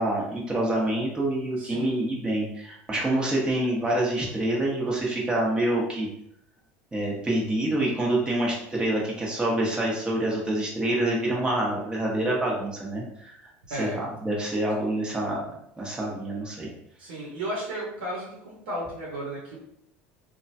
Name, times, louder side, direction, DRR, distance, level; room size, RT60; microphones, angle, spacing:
voice 1, 0.0-6.1 6.9-13.3 13.7-15.4 15.8-16.7, right 1 dB, 15° right, -4 dB, 1.1 m, -26 dB
voice 2, 1.6-2.0 13.7-14.0 17.0-19.6, right 1 dB, 80° right, -5 dB, 0.9 m, -34 dB
3.0 x 2.3 x 2.7 m, 0.74 s
hypercardioid pair, 90°, 6 cm